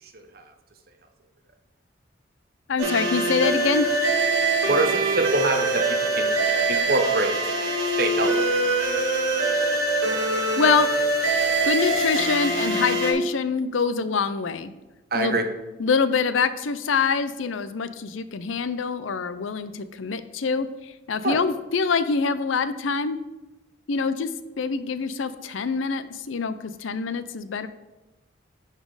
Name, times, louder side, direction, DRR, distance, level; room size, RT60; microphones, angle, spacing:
voice 1, 0.0-0.4 4.6-6.4 6.6-8.8 15.1-15.5 21.2-21.4, right 2 dB, 50° right, 5 dB, 0.9 m, -26 dB
voice 2, 2.7-3.9 10.6-10.9 11.6-14.7 15.1-15.4 15.8-23.2 23.9-24.3 24.6-27.7, left 5 dB, 85° left, 13 dB, 0.5 m, -25 dB
sound 1, 2.8-13.1, right 2 dB, 90° right, 1.7 m, -23 dB
10.0 x 4.2 x 4.8 m, 1.0 s
head